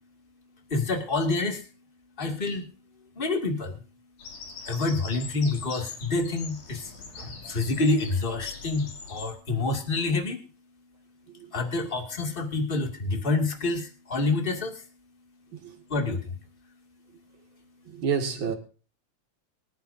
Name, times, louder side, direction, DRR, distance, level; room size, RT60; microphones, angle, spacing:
voice 1, 0.7-1.6 2.2-2.7 3.2-3.8 4.7-10.4 11.5-14.8 15.9-16.3, left 3 dB, 20° left, 2.1 m, -27 dB
Bird vocalization bird call bird song, 4.2-9.3, left 5 dB, 90° left, 4.3 m, -42 dB
voice 2, 17.9-18.5, right 6 dB, 40° right, 2.7 m, -29 dB
24.0 x 10.5 x 2.7 m
omnidirectional pair, 3.5 m